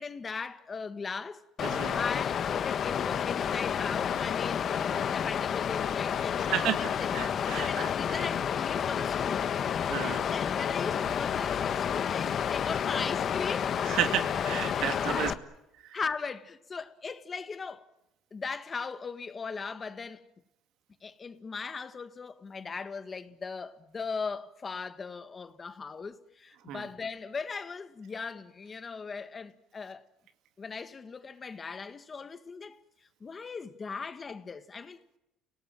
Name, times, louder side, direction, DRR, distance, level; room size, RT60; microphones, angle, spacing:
voice 1, 0.0-7.1 7.5-9.5 10.0-13.8 14.5-15.4 15.9-17.9 18.3-20.3 21.0-30.0 30.6-32.8 33.2-35.2, left 5 dB, 30° left, 1.8 m, -39 dB
Water, 1.6-15.3, left 8 dB, 50° left, 1.5 m, -30 dB
voice 2, 1.6-2.0 6.5-8.2 9.9-10.2 13.8-15.3 15.8-15.9 26.7-26.9, right 11 dB, 70° right, 2.3 m, -32 dB
29.5 x 18.5 x 9.1 m
supercardioid pair, 90°, 0 cm